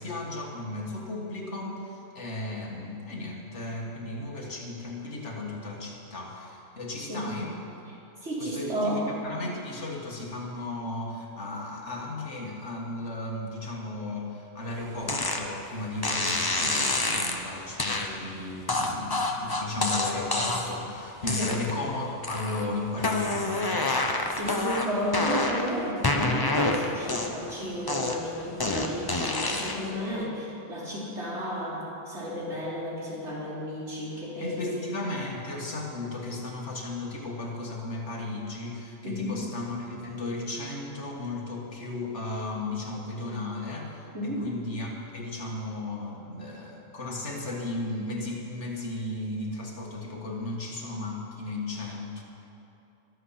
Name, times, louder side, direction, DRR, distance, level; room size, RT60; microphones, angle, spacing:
voice 1, 0.0-7.5 8.4-23.9 34.4-52.2, left 2 dB, 70° left, -1 dB, 2.1 m, -35 dB
voice 2, 8.2-9.1 21.4-21.5 24.3-34.8 39.0-39.4 44.1-44.5, equal, 70° right, -7 dB, 3.8 m, -32 dB
sound 1, 15.1-15.4 16.0-17.4 17.8-18.1 18.7-20.8 21.2-21.9 22.2-22.7 23.0-25.7 26.0-27.5 27.9-29.9, left 2 dB, 20° left, 0.8 m, -27 dB
22.5 x 7.8 x 5.7 m, 2.8 s
omnidirectional pair, 1.2 m